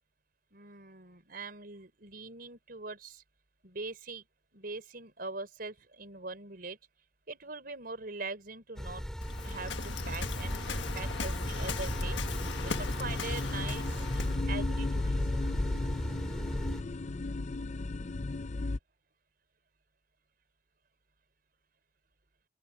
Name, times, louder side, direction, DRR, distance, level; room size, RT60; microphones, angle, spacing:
voice 1, 0.5-3.2 3.6-4.2 4.5-6.8 7.3-9.0 9.4-14.2 14.5-15.5, right 3 dB, 55° right, 4.7 m, -42 dB
sound 1, 8.8-16.8, equal, 5° left, 3.1 m, -36 dB
Waves surf, 9.2-14.4, left 4 dB, 85° left, 1.4 m, -38 dB
sound 2, 10.5-18.8, left 2 dB, 40° left, 0.5 m, -36 dB
open air
head